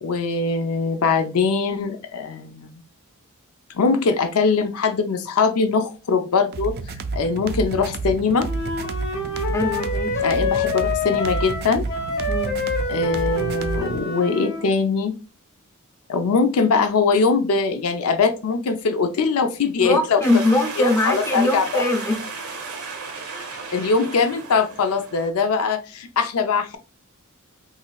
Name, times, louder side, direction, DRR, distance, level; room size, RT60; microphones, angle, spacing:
voice 1, 0.0-2.7 3.7-8.5 10.2-11.8 12.9-15.1 16.1-20.4 20.8-21.8 23.7-26.8, left 4 dB, 75° left, 0.5 m, -22 dB
sound 1, 6.5-14.1, right 3 dB, 45° right, 0.3 m, -30 dB
Wind instrument woodwind instrument, 8.4-14.7, left 4 dB, 45° left, 0.9 m, -26 dB
voice 2, 9.5-10.3 12.3-12.6 19.8-22.2, left 1 dB, 15° left, 0.5 m, -22 dB
sound 2, 20.2-25.3, right 4 dB, 75° right, 1.0 m, -34 dB
3.8 x 3.0 x 2.3 m
head